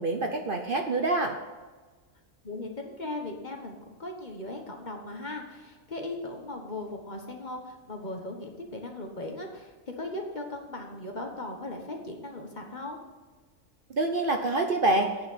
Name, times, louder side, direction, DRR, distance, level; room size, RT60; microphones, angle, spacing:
voice 1, 0.0-1.3 13.9-15.1, right 2 dB, 45° right, 4 dB, 0.8 m, -26 dB
voice 2, 2.4-13.0, left 2 dB, 35° left, 2 dB, 1.3 m, -38 dB
8.7 x 7.1 x 7.3 m, 1.3 s
omnidirectional pair, 1.4 m